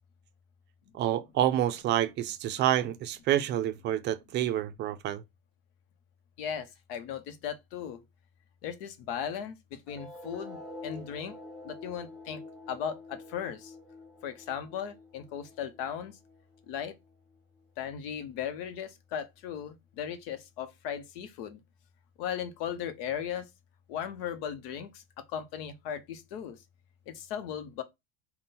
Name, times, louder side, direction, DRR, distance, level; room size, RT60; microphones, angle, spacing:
voice 1, 0.9-5.2, right 12 dB, 40° right, 0.4 m, -28 dB
voice 2, 6.4-8.0 8.6-11.3 11.6-12.4 12.7-13.7 14.2-16.1 16.7-16.9 17.8-21.6 22.2-23.5 23.9-25.0 25.3-26.6 27.1-27.8, left 8 dB, 70° left, 0.8 m, -37 dB
sound 1, 9.9-16.9, left 2 dB, ahead, 0.9 m, -47 dB
3.7 x 2.2 x 4.1 m
supercardioid pair, 120°, 29 cm